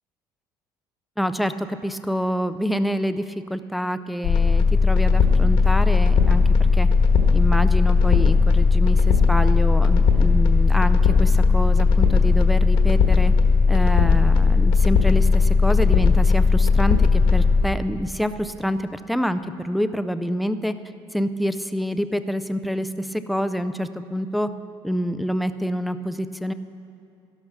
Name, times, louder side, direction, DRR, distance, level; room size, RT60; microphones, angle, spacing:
voice 1, 1.2-6.4 6.7-6.9 7.3-13.3 13.7-20.7 21.1-24.5 24.8-26.5, equal, ahead, 11 dB, 0.3 m, -27 dB
sound 1, 4.2-17.6, left 4 dB, 55° left, 1.3 m, -17 dB
12.5 x 12.0 x 5.9 m, 2.5 s
cardioid pair, 155°, 10 cm